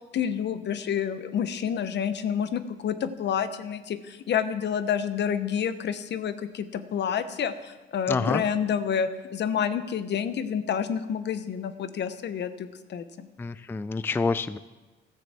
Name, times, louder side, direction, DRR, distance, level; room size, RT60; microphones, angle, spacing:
voice 1, 0.1-13.3, left 8 dB, 60° left, 11 dB, 0.9 m, -29 dB
voice 2, 8.1-8.4 13.4-14.6, left 4 dB, 10° left, 14 dB, 0.3 m, -27 dB
13.5 x 6.8 x 7.6 m, 1.2 s
cardioid pair, 90°, 20 cm